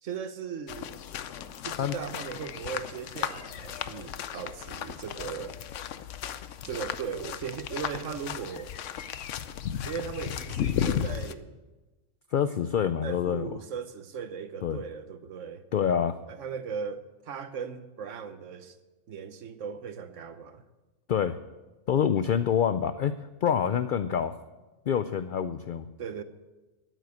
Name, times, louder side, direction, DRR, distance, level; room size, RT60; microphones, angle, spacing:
voice 1, 0.0-0.9 1.6-5.6 6.6-8.7 9.9-11.6 13.0-15.7 16.3-18.8 19.1-20.6 26.0-26.2, right 6 dB, 75° right, 1.2 m, -38 dB
sound 1, 0.7-11.3, left 9 dB, 75° left, 1.0 m, -35 dB
voice 2, 12.3-13.5 14.6-14.8 15.7-16.2 21.1-21.4 21.9-24.3 24.9-25.9, left 8 dB, 60° left, 0.5 m, -26 dB
13.0 x 7.8 x 9.3 m
omnidirectional pair, 1.3 m